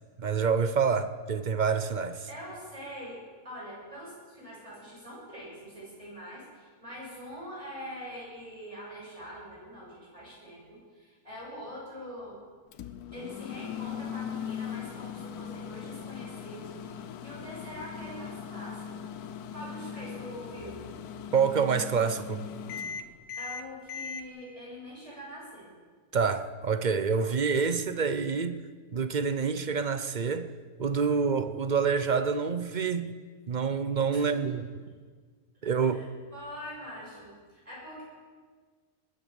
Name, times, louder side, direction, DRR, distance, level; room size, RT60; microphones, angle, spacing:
voice 1, 0.2-2.3 21.3-22.4 26.1-28.6 28.9-30.5 30.8-33.1 33.5-34.6 35.6-36.0, right 5 dB, 50° right, 0.6 m, -27 dB
voice 2, 2.3-12.4 13.1-19.1 19.5-20.8 23.3-25.7 34.1-34.4 35.8-36.0 36.3-38.0, equal, 20° right, 6.5 m, -44 dB
Microwave oven, 12.7-24.2, left 7 dB, 85° left, 1.3 m, -39 dB
20.5 x 9.2 x 7.2 m
omnidirectional pair, 1.6 m